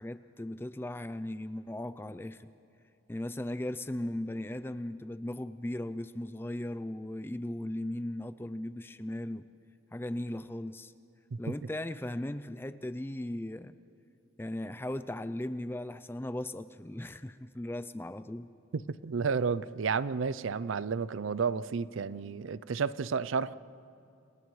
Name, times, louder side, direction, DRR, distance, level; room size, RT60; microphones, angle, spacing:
voice 1, 0.0-2.5 3.1-9.5 9.9-10.9 11.4-13.8 14.4-18.5, left 1 dB, 10° left, 0.4 m, -37 dB
voice 2, 18.9-23.6, right 5 dB, 85° right, 0.5 m, -31 dB
30.0 x 28.5 x 3.2 m
head